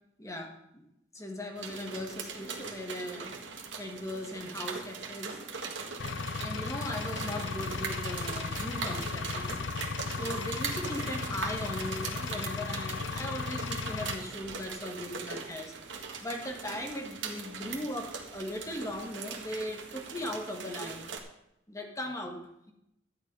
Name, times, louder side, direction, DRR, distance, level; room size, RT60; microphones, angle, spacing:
voice 1, 0.2-0.8 1.1-3.4 3.8-5.4 6.4-9.8 10.1-15.7 16.2-21.0 21.7-22.7, left 1 dB, 15° left, 3 dB, 1.7 m, -38 dB
sound 1, 1.5-21.2, right 5 dB, 70° right, 1.8 m, -41 dB
Engine, 6.0-14.1, left 4 dB, 70° left, 0.7 m, -36 dB
sound 2, 10.2-15.6, right 4 dB, 35° right, 3.8 m, -54 dB
12.0 x 9.1 x 5.4 m, 0.81 s
head